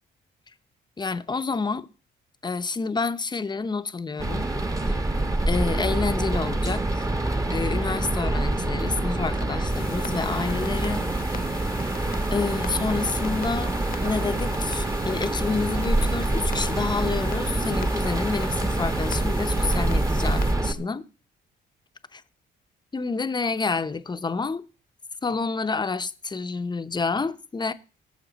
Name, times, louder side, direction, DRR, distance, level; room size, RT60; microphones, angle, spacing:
voice 1, 1.0-1.9 2.4-4.5 4.9-5.0 5.5-7.1 7.5-11.3 12.3-13.8 14.0-21.0 22.1-22.2 22.9-24.7 25.2-27.7, left 4 dB, 20° left, 0.8 m, -29 dB
sound 1, 4.2-20.7, right 2 dB, 15° right, 1.1 m, -26 dB
sound 2, 9.7-20.5, left 7 dB, 50° left, 1.0 m, -42 dB
18.0 x 6.6 x 4.0 m
cardioid pair, 90°, 20 cm